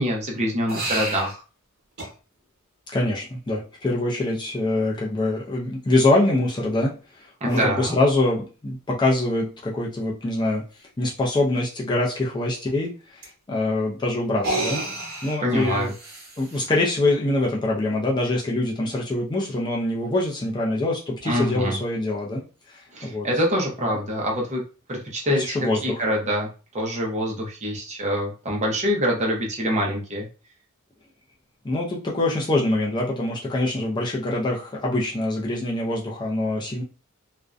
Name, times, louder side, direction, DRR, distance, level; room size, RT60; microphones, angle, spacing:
voice 1, 0.0-1.4 7.4-8.0 15.4-15.9 21.2-21.8 22.9-24.6 24.9-26.5 26.7-30.3, equal, 30° right, -1 dB, 0.6 m, -25 dB
sound 1, 0.7-1.3 2.0-2.1 4.2-4.3 7.5-7.7 9.1-9.2 9.7-9.8 10.1-10.2 13.2-13.3 14.3-16.7, right 2 dB, 50° right, 1.1 m, -30 dB
voice 2, 2.9-6.9 7.5-10.6 11.0-12.9 13.5-14.8 15.2-15.9 16.4-22.4 23.0-23.3 23.8-24.0 25.3-26.0 31.6-36.8, left 2 dB, 20° left, -3 dB, 0.4 m, -24 dB
2.5 x 2.1 x 2.4 m, 0.35 s
head